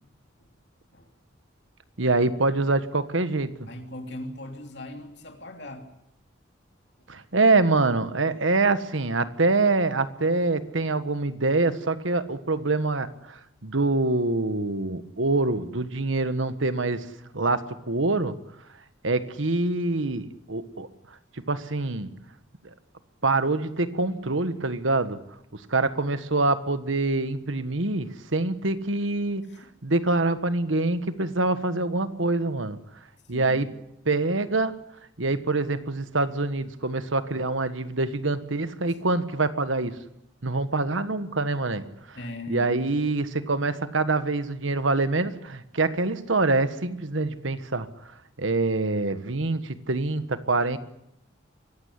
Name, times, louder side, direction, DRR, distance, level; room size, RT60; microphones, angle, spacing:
voice 1, 2.0-3.5 7.1-17.1 17.3-18.4 19.0-20.9 21.5-22.1 23.2-25.2 25.5-29.5 29.8-32.8 33.3-33.7 34.1-34.8 35.2-40.0 40.4-42.2 42.5-47.9 48.4-50.8, right 3 dB, 80° right, 12 dB, 1.5 m, -25 dB
voice 2, 3.7-5.9 29.5-29.7 33.3-33.7 38.9-39.0 42.1-43.0, left 1 dB, 60° left, 4 dB, 3.1 m, -39 dB
24.0 x 15.5 x 10.0 m, 0.81 s
head